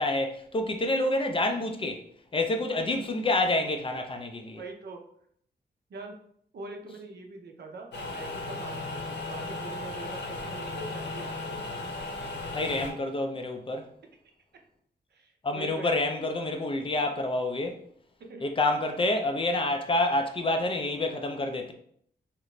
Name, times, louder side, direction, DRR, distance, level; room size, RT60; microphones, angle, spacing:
voice 1, 0.0-2.0 2.3-4.6 12.5-13.9 15.4-17.8 18.4-21.7, left 2 dB, 30° left, 0.4 m, -28 dB
voice 2, 4.6-5.0 5.9-6.1 6.5-11.9 15.1-16.1 18.2-18.5, right 3 dB, 70° right, 0.6 m, -43 dB
sound 1, 7.9-12.9, left 2 dB, 85° left, 0.7 m, -36 dB
2.9 x 2.4 x 3.1 m
wide cardioid pair, 125°, 18 cm